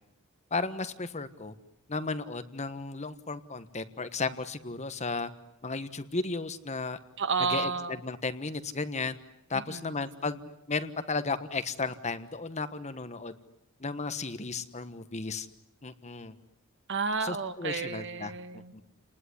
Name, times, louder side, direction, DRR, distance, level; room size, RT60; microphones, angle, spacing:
voice 1, 0.5-1.5 1.9-5.3 5.6-7.0 7.5-9.2 9.5-10.4 10.7-13.3 13.8-15.5 15.8-16.3 17.2-18.8, left 3 dB, 30° left, 11 dB, 1.4 m, -34 dB
voice 2, 7.2-8.0 9.7-9.9 16.9-18.8, right 4 dB, 55° right, 10 dB, 1.7 m, -31 dB
30.0 x 20.0 x 9.8 m, 0.81 s
head